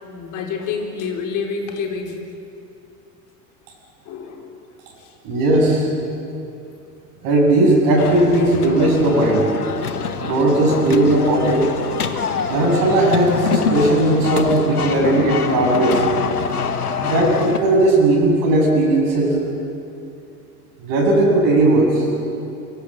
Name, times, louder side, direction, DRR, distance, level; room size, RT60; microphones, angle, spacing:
voice 1, 0.0-2.2 4.0-4.5 5.0-5.1, left 5 dB, 40° left, 2 dB, 4.2 m, -28 dB
voice 2, 5.2-5.9 7.2-9.5 10.2-11.7 12.5-16.0 17.0-19.4 20.8-22.1, right 2 dB, 50° right, -1 dB, 7.5 m, -17 dB
sound 1, 8.0-17.6, left 6 dB, 80° left, 1.5 m, -25 dB
24.5 x 24.0 x 7.5 m, 2.7 s
figure-of-eight pair, 75°, 45 cm